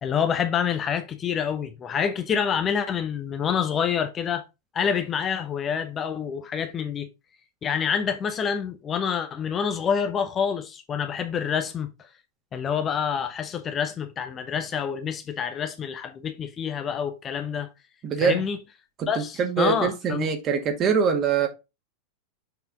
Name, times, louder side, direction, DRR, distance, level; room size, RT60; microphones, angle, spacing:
voice 1, 0.0-4.4 4.7-7.1 7.6-12.1 12.5-17.7 18.2-18.6 19.1-20.3, left 7 dB, 25° left, 1.0 m, -27 dB
voice 2, 18.0-18.4 19.0-21.5, right 6 dB, 30° right, 2.1 m, -24 dB
7.0 x 5.5 x 3.7 m
figure-of-eight pair, 90°, 0 cm